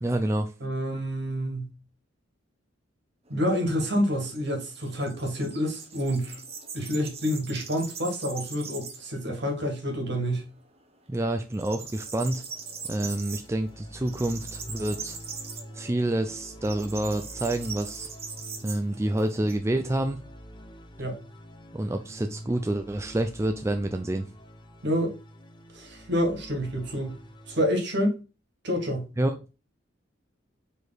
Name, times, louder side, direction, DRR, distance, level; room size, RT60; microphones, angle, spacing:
voice 1, 0.0-0.5 11.1-12.4 12.9-15.2 15.7-18.1 18.6-20.2 21.7-24.3 29.2-29.3, right 1 dB, 15° right, 0.4 m, -28 dB
voice 2, 0.6-1.7 3.3-6.4 6.7-10.5 21.0-21.2 24.8-25.2 25.7-27.2 27.5-28.2 28.6-29.1, equal, 65° right, 2.1 m, -28 dB
sound 1, 3.3-9.2 9.5-9.6 10.0-10.8 11.1-19.6, right 5 dB, 35° right, 1.1 m, -41 dB
sound 2, 11.7-27.7, equal, 25° left, 0.8 m, -46 dB
5.0 x 4.8 x 4.0 m
head